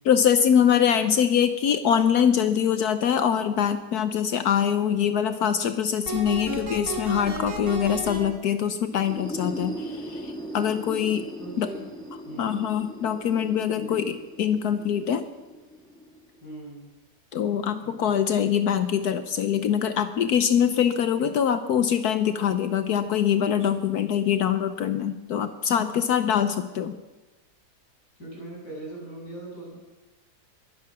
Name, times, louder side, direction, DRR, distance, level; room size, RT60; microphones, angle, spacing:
voice 1, 0.0-11.3 11.6-11.7 12.4-15.2 17.3-26.9, left 8 dB, 70° left, 10 dB, 1.3 m, -23 dB
sound 1, 6.1-8.2, right 1 dB, 50° right, 4.2 m, -31 dB
sound 2, 8.9-16.5, right 1 dB, 5° left, 1.5 m, -39 dB
voice 2, 11.4-11.8 12.2-12.6 13.8-14.1 16.4-16.9 17.8-18.2 28.2-29.8, right 2 dB, 85° left, -4 dB, 7.9 m, -40 dB
22.5 x 10.5 x 6.1 m, 1.1 s
omnidirectional pair, 1.7 m